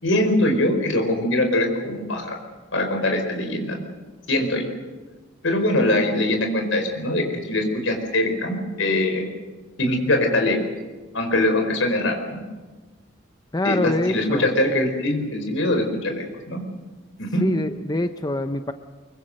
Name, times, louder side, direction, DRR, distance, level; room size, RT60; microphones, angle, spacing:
voice 1, 0.0-2.4 2.7-3.8 4.3-4.6 5.4-9.3 9.8-10.6 11.1-12.4 13.6-16.6 17.2-17.5, left 1 dB, 70° left, 5 dB, 4.6 m, -22 dB
voice 2, 13.5-14.5 17.4-18.7, left 2 dB, 20° left, 8 dB, 0.7 m, -24 dB
24.5 x 23.0 x 6.6 m, 1.3 s
head